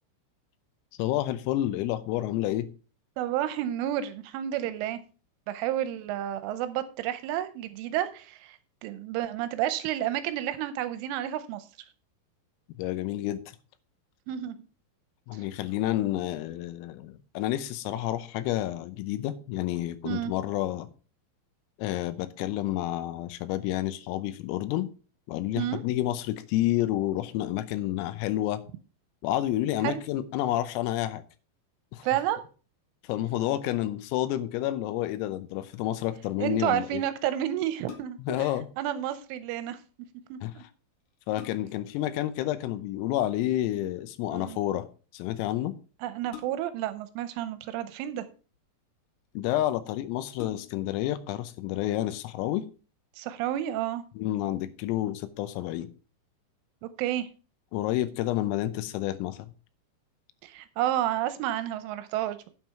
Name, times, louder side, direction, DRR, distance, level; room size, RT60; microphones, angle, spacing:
voice 1, 1.0-2.7 12.8-13.4 15.3-20.9 21.8-24.9 25.3-28.6 29.2-31.2 31.9-32.1 33.0-37.0 38.2-38.7 40.4-40.7 41.3-44.9 45.1-45.8 49.4-52.7 54.2-55.9 57.7-59.5, left 14 dB, 85° left, 3.5 m, -29 dB
voice 2, 3.2-5.0 5.5-11.6 14.3-14.5 20.0-20.3 25.6-25.8 29.8-30.0 32.0-32.4 36.4-38.2 38.8-39.8 40.3-40.6 44.3-44.6 46.0-48.3 53.2-54.0 56.8-57.3 60.4-62.5, right 12 dB, 80° right, 3.0 m, -30 dB
sound 1, 37.6-38.4 40.4-40.5 41.0-41.9 43.5-43.8 46.3-46.9 47.9-48.6 49.3-49.4 49.7-49.8 50.3-51.0 51.5-51.6, left 9 dB, 65° left, 2.1 m, -46 dB
9.0 x 7.4 x 4.7 m
omnidirectional pair, 5.9 m